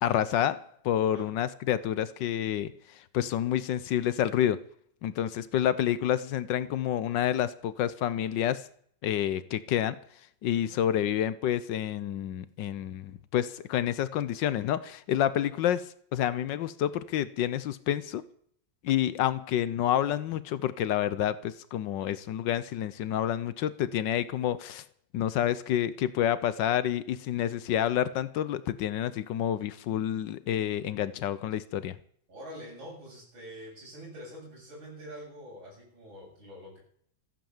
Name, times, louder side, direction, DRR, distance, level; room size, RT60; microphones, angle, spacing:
voice 1, 0.0-4.6 5.0-8.6 9.0-10.0 10.4-18.2 18.8-24.8 25.1-32.0, left 11 dB, 70° left, 1.3 m, -29 dB
voice 2, 10.5-10.8 32.3-36.8, equal, 80° right, 8.4 m, -46 dB
14.0 x 9.0 x 7.2 m
omnidirectional pair, 2.1 m